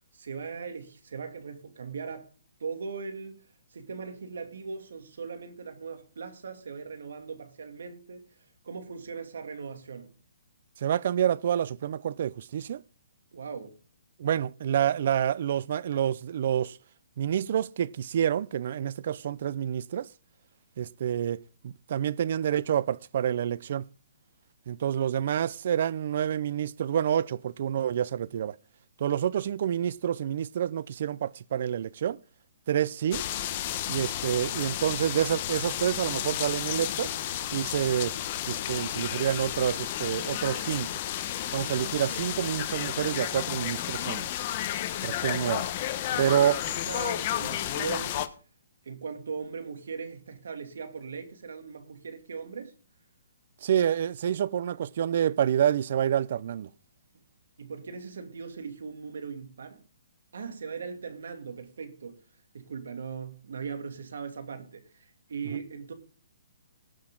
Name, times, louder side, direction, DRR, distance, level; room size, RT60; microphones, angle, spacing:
voice 1, 0.1-2.3 2.6-3.4 3.7-8.2 8.6-10.1 13.3-13.7 46.1-48.3 48.8-52.7 57.6-59.8 60.3-62.1 62.5-65.9, right 5 dB, 75° right, 2.6 m, -39 dB
voice 2, 10.8-12.8 14.2-16.8 17.2-20.1 20.8-23.9 24.7-28.6 29.0-32.2 32.7-33.2 33.9-37.2 37.5-38.2 38.5-40.9 41.5-44.3 45.0-45.7 46.2-46.6 53.6-56.7 65.5-65.6, right 9 dB, 50° right, 0.5 m, -28 dB
sound 1, 33.1-48.3, left 12 dB, 35° left, 1.0 m, -32 dB
19.0 x 6.5 x 3.8 m
hypercardioid pair, 160°, 0 cm